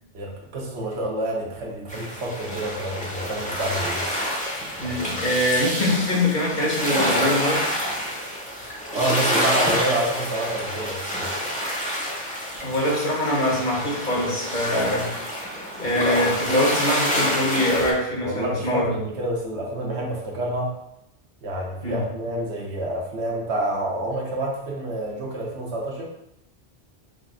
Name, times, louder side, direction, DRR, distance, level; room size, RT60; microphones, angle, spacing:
voice 1, 0.1-4.1 4.8-5.2 8.9-11.7 18.2-20.7 21.4-26.1, right 1 dB, 75° right, -1 dB, 1.0 m, -28 dB
sound 1, 1.9-17.9, equal, 10° left, 0.6 m, -27 dB
voice 2, 4.8-7.8 12.6-15.1 15.4-15.5 15.8-19.0 21.8-22.0, left 1 dB, 45° left, -5 dB, 1.1 m, -23 dB
5.0 x 2.5 x 2.3 m, 0.83 s
omnidirectional pair, 1.2 m